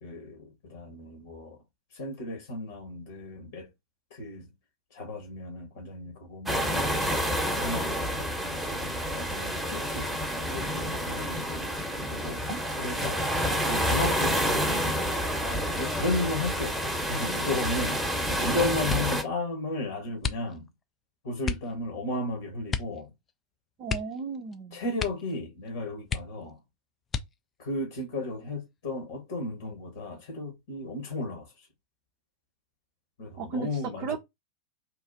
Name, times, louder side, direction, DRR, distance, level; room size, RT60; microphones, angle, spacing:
voice 1, 0.0-1.6 1.9-3.7 4.1-4.4 4.9-6.7 7.5-10.1 10.5-11.7 12.1-12.4 12.8-13.2 13.7-14.7 15.5-20.7 21.2-23.1 24.7-26.6 27.6-31.5 33.2-34.2, left 2 dB, 55° left, 1.2 m, -34 dB
sound 1, 6.5-19.2, equal, ahead, 0.9 m, -29 dB
sound 2, 18.8-19.3 20.2-20.8 21.4-21.7 22.7-23.0 23.3-23.4 23.8-24.6 24.9-25.4 25.7-25.8 26.1-26.6 27.1-27.6 28.3-28.9 29.3-29.7, left 6 dB, 20° left, 0.4 m, -34 dB
voice 2, 23.8-24.8 33.4-33.7 34.0-34.2, right 5 dB, 40° right, 0.5 m, -34 dB
2.9 x 2.4 x 3.8 m
figure-of-eight pair, 90°, 0 cm